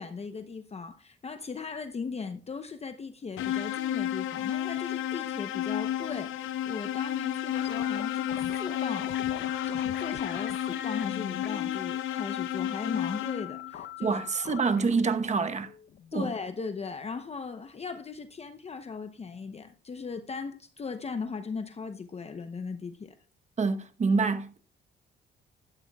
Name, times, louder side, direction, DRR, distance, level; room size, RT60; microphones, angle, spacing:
voice 1, 0.0-9.1 9.6-14.4 16.1-23.2, left 5 dB, 30° left, 0.8 m, -38 dB
sound 1, 3.4-13.7, left 11 dB, 85° left, 0.8 m, -32 dB
sound 2, 7.5-16.5, left 10 dB, 60° left, 0.8 m, -42 dB
voice 2, 14.0-15.7 16.1-16.3 23.6-24.6, right 4 dB, 35° right, 1.1 m, -26 dB
14.0 x 11.5 x 2.3 m
cardioid pair, 90°, 20 cm